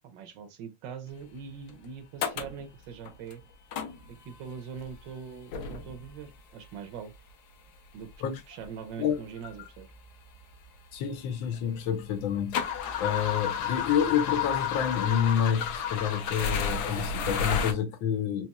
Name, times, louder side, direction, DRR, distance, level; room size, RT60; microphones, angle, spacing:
voice 1, 0.0-3.4 4.1-7.1 7.9-8.1 8.5-9.9, right 7 dB, 75° right, 1.3 m, -42 dB
sound 1, 1.7-1.8 2.2-2.6 3.0-3.3 3.7-4.3 4.8-5.1 5.5-6.2 7.1-7.2 8.1-8.2 8.6-8.7 9.4-9.5 9.7-11.6 12.0-17.7, left 7 dB, 70° left, 1.0 m, -31 dB
voice 2, 10.9-18.5, left 8 dB, 90° left, 1.5 m, -28 dB
4.0 x 2.9 x 2.3 m
omnidirectional pair, 2.1 m